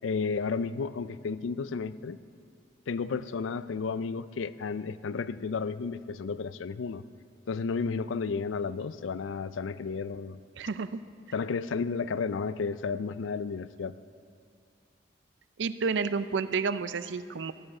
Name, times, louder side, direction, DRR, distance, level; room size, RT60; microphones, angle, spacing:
voice 1, 0.0-2.2 2.9-7.0 7.5-10.4 11.3-13.9, left 5 dB, 85° left, 15 dB, 0.4 m, -32 dB
voice 2, 10.6-11.0 15.6-17.5, right 5 dB, 70° right, 13 dB, 0.5 m, -30 dB
14.5 x 11.0 x 6.5 m, 2.3 s
head